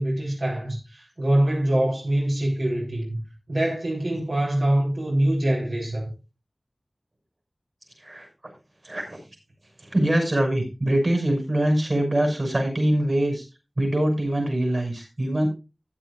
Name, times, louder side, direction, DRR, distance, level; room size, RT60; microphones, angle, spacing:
voice 1, 0.0-3.2 3.5-6.1, right 1 dB, 85° right, 4.3 m, -24 dB
voice 2, 8.0-8.5 8.8-9.2 9.8-13.4 13.8-15.5, right 1 dB, 50° right, 5.7 m, -24 dB
15.0 x 9.4 x 2.5 m
wide cardioid pair, 60°, 0 cm